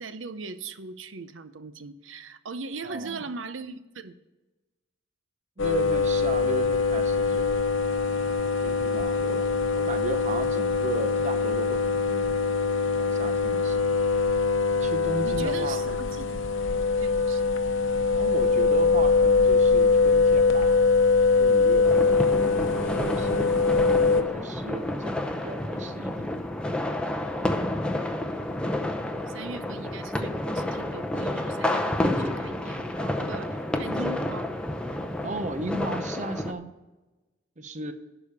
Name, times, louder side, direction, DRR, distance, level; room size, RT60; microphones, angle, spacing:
voice 1, 0.0-4.1 13.6-13.8 15.2-16.4 16.7-17.5 29.3-34.5, right 4 dB, 85° right, 12 dB, 0.7 m, -39 dB
voice 2, 2.8-3.2 5.6-7.6 8.6-9.5 9.7-12.4 13.0-14.0 14.7-15.8 18.2-20.8 21.3-22.2 22.7-23.5 23.9-26.3 35.2-36.7 37.6-37.9, right 2 dB, 40° right, 9 dB, 0.8 m, -35 dB
sound 1, 5.6-24.2, left 4 dB, 80° left, 0.8 m, -23 dB
sound 2, 21.8-36.5, left 1 dB, 5° left, 0.7 m, -30 dB
11.5 x 5.0 x 7.0 m, 1.1 s
head